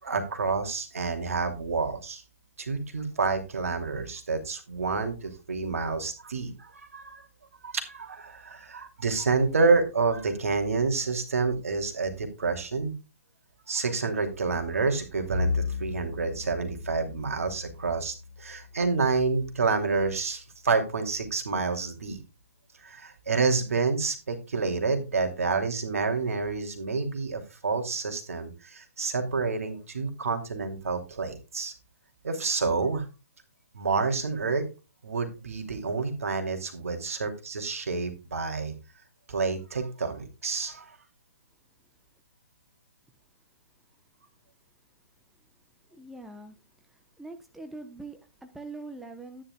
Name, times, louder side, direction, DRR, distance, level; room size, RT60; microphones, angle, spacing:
voice 1, 0.0-2.2 2.6-7.2 7.6-12.9 13.7-22.2 22.8-31.7 32.2-33.1 33.7-34.7 35.0-38.7 39.3-40.9, right 4 dB, 70° right, 5 dB, 2.7 m, -28 dB
Bowed string instrument, 15.3-19.9, left 3 dB, 50° right, 2.2 m, -35 dB
voice 2, 45.9-46.6 47.2-49.4, right 2 dB, ahead, 6 dB, 0.8 m, -42 dB
12.5 x 10.0 x 2.3 m, 0.28 s
figure-of-eight pair, 130°, 8 cm